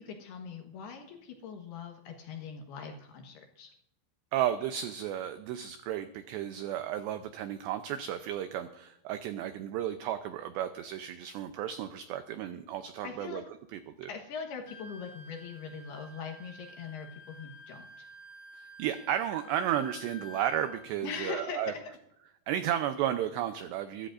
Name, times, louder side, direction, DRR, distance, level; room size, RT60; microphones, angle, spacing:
voice 1, 0.0-3.7 13.0-13.4 14.1-18.1 21.0-21.8, left 5 dB, 70° left, 3 dB, 2.8 m, -41 dB
voice 2, 4.3-13.4 13.7-14.1 18.5-21.7 22.5-24.1, right 11 dB, 90° right, 9 dB, 2.4 m, -33 dB
Wind instrument woodwind instrument, 14.6-20.9, left 2 dB, 10° right, 5.3 m, -50 dB
22.5 x 13.0 x 2.5 m, 0.77 s
omnidirectional pair, 5.8 m